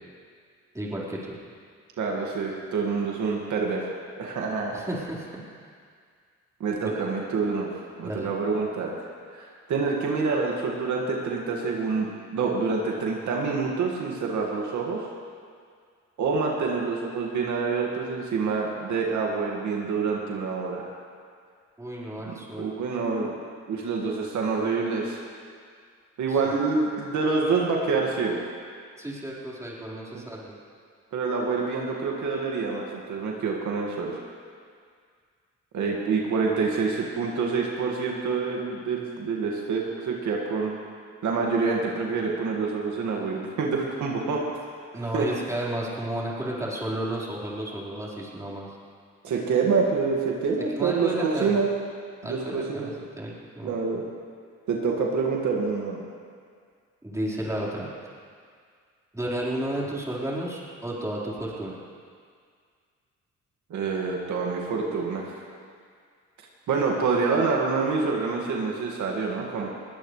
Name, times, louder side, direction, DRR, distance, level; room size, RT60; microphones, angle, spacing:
voice 1, 0.7-1.4 4.7-5.4 6.8-6.9 8.0-8.3 21.8-22.7 26.3-26.5 29.0-30.5 44.9-48.7 50.7-51.5 52.2-53.7 57.0-57.9 59.1-61.8, right 1 dB, 10° right, -6 dB, 4.7 m, -32 dB
voice 2, 2.0-4.7 6.6-7.7 8.0-8.9 9.3-15.0 16.2-20.8 22.3-23.4 23.7-25.2 26.2-28.4 31.1-34.2 35.7-40.8 41.2-44.4 44.9-45.3 49.2-51.7 52.2-52.9 53.6-54.0 54.7-56.0 63.7-65.4 66.7-69.7, right 4 dB, 70° right, -2 dB, 2.2 m, -27 dB
21.5 x 17.0 x 3.4 m, 2.1 s
cardioid pair, 90°, 30 cm